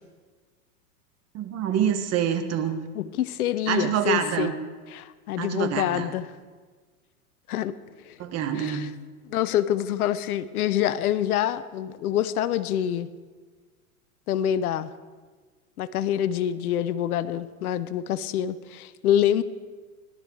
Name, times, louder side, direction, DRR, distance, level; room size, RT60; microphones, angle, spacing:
voice 1, 1.3-2.8 3.7-4.5 5.4-6.1 8.2-8.9, right 8 dB, 35° right, 8 dB, 1.4 m, -26 dB
voice 2, 2.9-4.5 4.9-6.3 7.5-7.8 8.1-8.2 8.6-8.9 9.3-13.1 14.3-14.9 15.8-19.4, left 11 dB, 75° left, 15 dB, 0.9 m, -26 dB
17.5 x 12.0 x 4.7 m, 1.5 s
hypercardioid pair, 115°, 45 cm